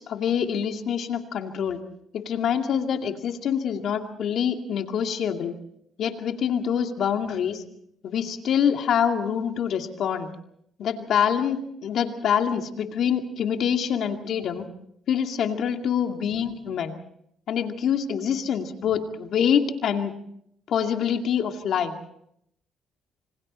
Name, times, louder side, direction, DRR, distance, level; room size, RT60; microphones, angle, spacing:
voice 1, 0.0-1.8 2.1-5.6 6.0-7.6 8.0-10.3 10.8-14.7 15.1-16.9 17.5-20.1 20.7-21.9, left 8 dB, 70° left, 5 dB, 2.3 m, -25 dB
27.0 x 25.5 x 4.3 m, 0.72 s
cardioid pair, 90°, 0 cm